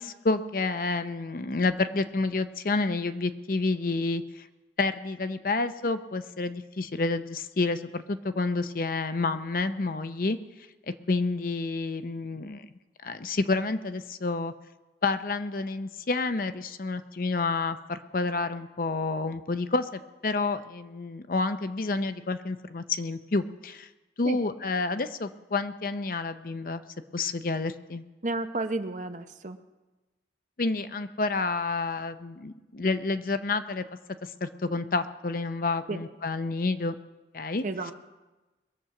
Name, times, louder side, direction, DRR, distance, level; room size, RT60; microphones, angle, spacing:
voice 1, 0.0-4.5 4.8-10.4 11.1-12.6 13.0-14.5 15.0-23.9 24.2-26.8 27.1-28.0 30.6-33.8 34.2-36.9 37.3-37.6, left 3 dB, 50° left, 10 dB, 0.6 m, -29 dB
voice 2, 28.2-29.6 35.9-36.0 37.6-37.9, right 2 dB, 45° right, 8 dB, 0.8 m, -32 dB
21.5 x 7.9 x 5.9 m, 1.1 s
head